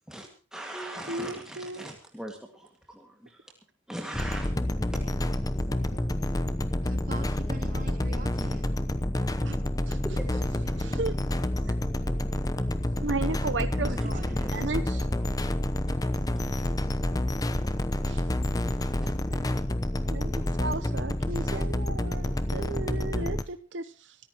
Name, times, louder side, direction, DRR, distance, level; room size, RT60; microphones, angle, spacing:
voice 1, 0.1-3.5 3.9-5.7 8.3-8.6 9.9-10.4 10.8-11.1 12.0-12.1 13.9-15.5 18.3-19.4, right 1 dB, 5° right, 1 dB, 2.0 m, -42 dB
voice 2, 1.1-1.8 5.9-6.0 9.4-9.6 9.9-10.0 10.8-11.1 13.0-13.9 14.5-15.1 18.1-18.2 20.1-20.3 20.6-24.2, right 3 dB, 75° right, 11 dB, 0.9 m, -34 dB
sound 1, 4.1-23.4, left 1 dB, 20° left, 0.9 m, -28 dB
voice 3, 6.8-8.6 13.8-14.5 21.4-21.7, right 2 dB, 45° right, 4 dB, 3.4 m, -42 dB
24.5 x 14.0 x 3.0 m, 0.36 s
head